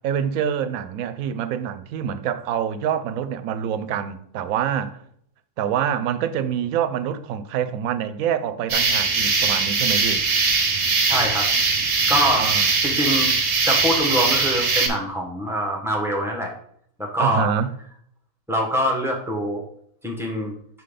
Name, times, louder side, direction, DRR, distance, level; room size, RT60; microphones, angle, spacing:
voice 1, 0.0-5.0 5.6-10.2 12.4-12.7 17.2-17.7, right 8 dB, 80° right, 1.0 m, -26 dB
sound 1, 8.7-14.9, right 4 dB, 50° right, 1.0 m, -21 dB
voice 2, 11.1-11.5 12.1-12.5 12.8-13.3 13.6-16.5 17.0-17.5 18.5-19.6 20.0-20.5, equal, ahead, 1.0 m, -24 dB
5.5 x 3.8 x 5.1 m
omnidirectional pair, 1.4 m